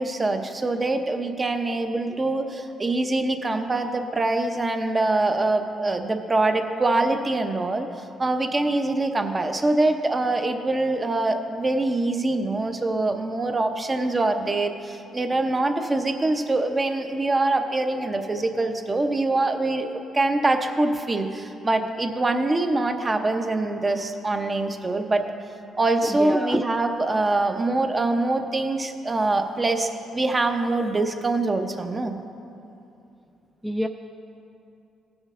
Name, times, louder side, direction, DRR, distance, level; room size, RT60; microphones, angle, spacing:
voice 1, 0.0-7.9 8.2-25.2 25.8-32.2, right 2 dB, 25° right, 5 dB, 0.8 m, -24 dB
voice 2, 26.0-26.6 33.6-33.9, equal, ahead, 4 dB, 0.4 m, -26 dB
16.0 x 6.3 x 3.7 m, 2.7 s
cardioid pair, 90°, 0 cm